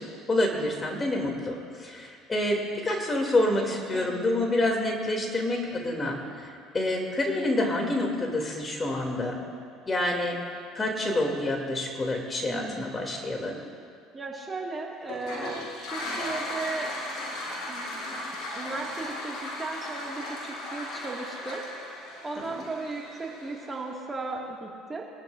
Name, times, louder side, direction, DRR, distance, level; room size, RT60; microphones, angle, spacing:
voice 1, 0.0-9.4 9.9-10.4 10.7-13.6, left 1 dB, 30° left, 1 dB, 2.8 m, -28 dB
voice 2, 3.9-4.5 12.4-12.9 14.1-16.9 17.6-18.0 18.5-21.6 22.2-25.1, right 3 dB, 25° right, -1 dB, 2.1 m, -36 dB
Toilet flush, 15.0-23.9, left 1 dB, 65° left, 3.9 m, -36 dB
22.5 x 12.5 x 2.6 m, 2.2 s
hypercardioid pair, 70°, 0 cm